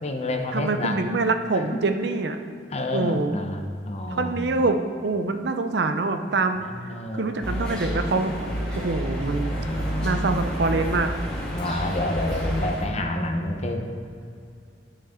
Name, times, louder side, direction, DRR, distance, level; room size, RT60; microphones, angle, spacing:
voice 1, 0.0-1.0 1.5-1.8 2.7-4.6 6.6-7.4 9.6-10.2 11.5-13.8, left 1 dB, 35° left, 4 dB, 0.8 m, -29 dB
voice 2, 0.5-2.4 2.9-3.3 4.1-6.7 7.2-8.3 8.7-9.6 10.0-11.1, right 3 dB, 65° right, 7 dB, 0.6 m, -25 dB
sound 1, 7.4-12.8, equal, 5° left, 1.9 m, -29 dB
10.5 x 6.5 x 3.7 m, 2.4 s
head